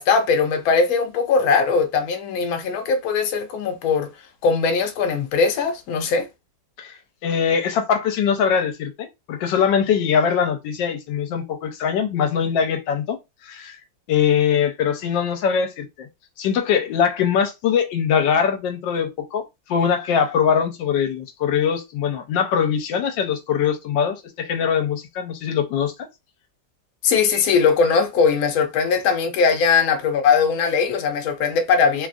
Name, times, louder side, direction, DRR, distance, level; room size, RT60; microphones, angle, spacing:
voice 1, 0.0-4.1 4.4-6.3 27.0-32.1, left 5 dB, 65° left, 1.0 m, -20 dB
voice 2, 6.8-13.2 13.4-13.8 14.1-16.1 16.4-19.4 19.7-25.9, left 7 dB, 85° left, 1.3 m, -22 dB
3.2 x 2.3 x 2.5 m
omnidirectional pair, 2.0 m